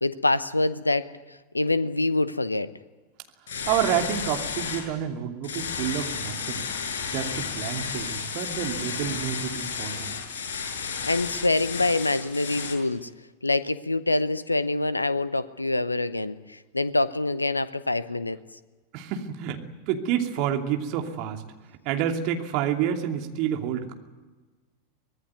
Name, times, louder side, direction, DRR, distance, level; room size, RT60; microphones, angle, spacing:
voice 1, 0.0-1.1 1.5-2.7 10.7-13.1 13.4-18.4, left 2 dB, 85° left, 16 dB, 0.8 m, -25 dB
sound 1, 3.5-4.8 5.4-12.8, left 6 dB, 60° left, 5.7 m, -32 dB
voice 2, 3.7-6.7 7.0-10.1 18.9-19.6 19.9-21.4 21.8-23.9, right 9 dB, 45° right, 4 dB, 2.8 m, -28 dB
24.5 x 19.0 x 9.5 m, 1.3 s
figure-of-eight pair, 90°, 0 cm